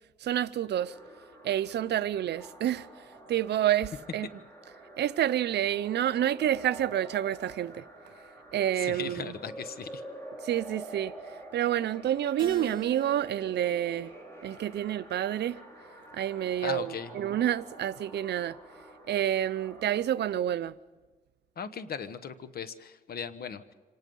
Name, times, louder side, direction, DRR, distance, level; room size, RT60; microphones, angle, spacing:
voice 1, 0.2-0.9 1.4-2.9 3.3-4.3 5.0-7.8 8.5-9.3 10.4-11.1 11.5-14.1 14.4-15.6 16.1-18.6 19.1-20.7, right 11 dB, 75° right, 0.6 m, -28 dB
sound 1, 0.7-20.0, right 1 dB, 15° left, 5.4 m, -48 dB
voice 2, 8.8-10.0 16.6-17.2 21.6-23.7, left 7 dB, 60° left, 1.1 m, -38 dB
Keyboard (musical), 12.4-14.9 15.5-16.7, right 5 dB, 30° right, 2.8 m, -46 dB
25.5 x 19.0 x 5.4 m
cardioid pair, 115°, 18 cm